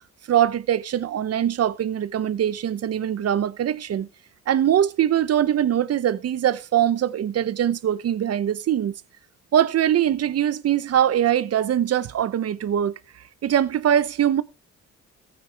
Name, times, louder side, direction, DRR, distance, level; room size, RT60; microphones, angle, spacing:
voice 1, 0.3-4.1 4.5-8.9 9.5-12.9 13.4-14.4, right 10 dB, 55° right, 0.9 m, -22 dB
14.5 x 9.2 x 3.4 m
cardioid pair, 90°, 30 cm